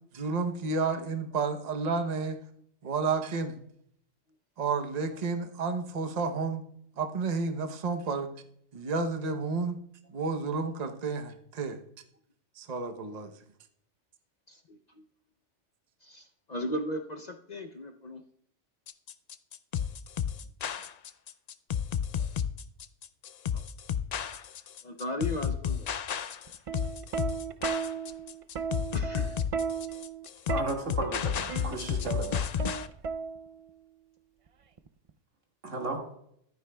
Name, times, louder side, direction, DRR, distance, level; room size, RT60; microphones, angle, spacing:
voice 1, 0.1-2.4 2.8-3.6 4.6-6.6 7.0-8.3 8.7-9.8 10.1-11.8 12.6-13.3, right 4 dB, 40° right, 6 dB, 0.9 m, -31 dB
voice 2, 14.5-14.8 16.0-18.2 23.5-23.6 24.8-25.9 28.9-29.4, left 1 dB, 45° left, 4 dB, 0.6 m, -36 dB
sound 1, 18.9-32.9, left 8 dB, 90° left, 0.3 m, -32 dB
Plucked string instrument, 26.5-33.7 34.8-35.1, right 6 dB, 60° right, 0.3 m, -35 dB
voice 3, 30.5-32.5 35.6-36.0, right 2 dB, 80° right, 1 dB, 2.3 m, -34 dB
14.5 x 12.0 x 2.2 m, 0.71 s
omnidirectional pair, 1.2 m